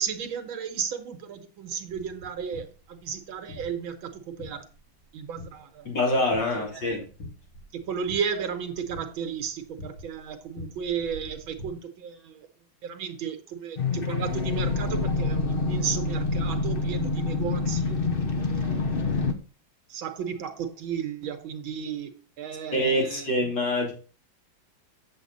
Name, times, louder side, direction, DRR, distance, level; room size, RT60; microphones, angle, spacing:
voice 1, 0.0-4.6 5.1-5.9 6.6-7.0 7.7-12.5 12.8-18.0 18.4-19.0 19.9-23.3, right 7 dB, 85° right, 2.0 m, -34 dB
sound 1, 1.9-11.7, left 1 dB, 80° left, 5.9 m, -46 dB
voice 2, 5.9-7.0 22.7-23.9, left 1 dB, 65° left, 4.0 m, -25 dB
sound 2, 13.8-19.3, left 3 dB, 40° left, 0.9 m, -27 dB
8.1 x 7.6 x 4.1 m
omnidirectional pair, 2.2 m